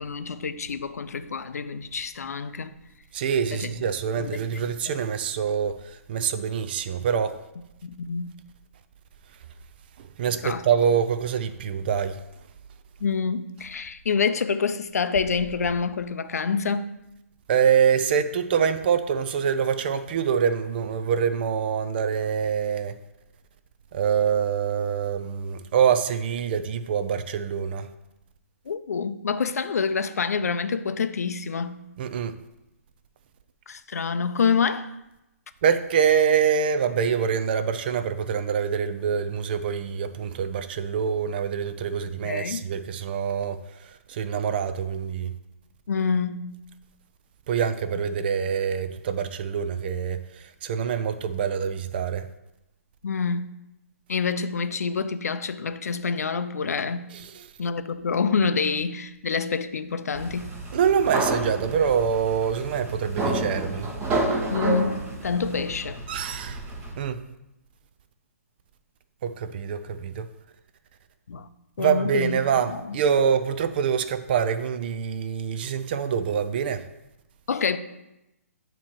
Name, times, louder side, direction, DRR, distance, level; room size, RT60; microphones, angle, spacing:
voice 1, 0.0-2.7 3.6-3.7 4.2-4.7 7.8-8.3 10.3-10.7 13.0-17.0 28.7-31.8 33.7-34.9 42.2-42.7 45.9-46.6 53.0-53.5 54.1-57.1 57.6-60.5 64.5-66.0 71.3-71.5 71.8-72.4 72.7-73.0 77.5-77.8, left 5 dB, 80° left, 0.5 m, -27 dB
voice 2, 3.1-7.4 10.0-12.2 17.5-23.0 23.9-27.9 32.0-32.4 35.6-45.3 47.5-52.3 57.1-57.5 60.7-63.9 66.1-66.7 67.0-67.2 69.2-70.3 71.8-76.9, right 7 dB, 40° right, 0.4 m, -25 dB
sound 1, 60.1-66.9, right 2 dB, 25° right, 1.7 m, -30 dB
8.8 x 3.0 x 4.5 m
hypercardioid pair, 150°, 8 cm